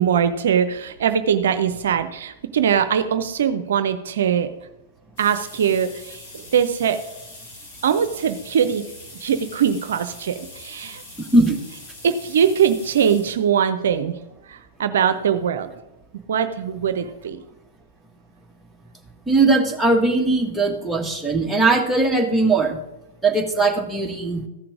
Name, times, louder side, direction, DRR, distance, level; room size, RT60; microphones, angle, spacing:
voice 1, 0.0-4.5 5.2-7.0 7.8-8.8 9.2-11.0 12.0-14.2 14.5-15.7 16.3-17.4, right 8 dB, 65° right, 11 dB, 0.6 m, -21 dB
sound 1, 5.2-13.4 14.3-14.4 15.6-15.7 16.1-16.2 16.4-16.5, left 2 dB, 40° left, 4.1 m, -42 dB
voice 2, 19.3-22.8 23.2-24.4, right 3 dB, 5° right, 0 dB, 1.6 m, -19 dB
14.5 x 5.9 x 5.0 m, 0.93 s
figure-of-eight pair, 105°, 0 cm